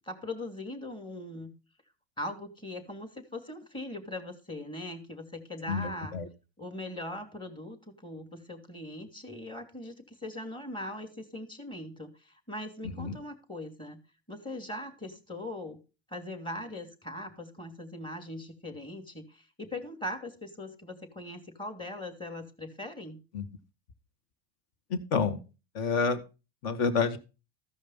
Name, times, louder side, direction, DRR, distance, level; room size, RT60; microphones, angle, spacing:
voice 1, 0.0-1.5 2.2-6.2 6.6-14.0 14.3-15.8 16.1-23.2, left 1 dB, 15° left, 7 dB, 2.7 m, -40 dB
voice 2, 5.7-6.3 13.0-13.2 23.3-23.5 24.9-25.4 25.8-26.2 26.6-27.2, left 5 dB, 55° left, 11 dB, 1.8 m, -28 dB
14.5 x 5.3 x 5.6 m, 0.31 s
hypercardioid pair, 90°, 30 cm